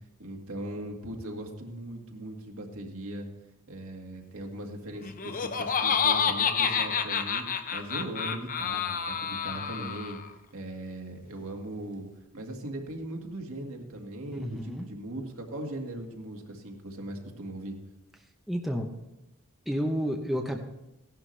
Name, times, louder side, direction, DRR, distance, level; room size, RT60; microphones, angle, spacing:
voice 1, 0.2-3.3 3.7-10.2 10.5-12.1 12.3-17.8, right 1 dB, 65° right, 1 dB, 1.9 m, -39 dB
Laughter, 5.0-10.3, left 6 dB, 40° left, 0.7 m, -29 dB
voice 2, 14.3-14.9 18.5-18.9 19.7-20.6, equal, ahead, 1 dB, 0.8 m, -30 dB
16.5 x 11.0 x 3.3 m, 0.92 s
head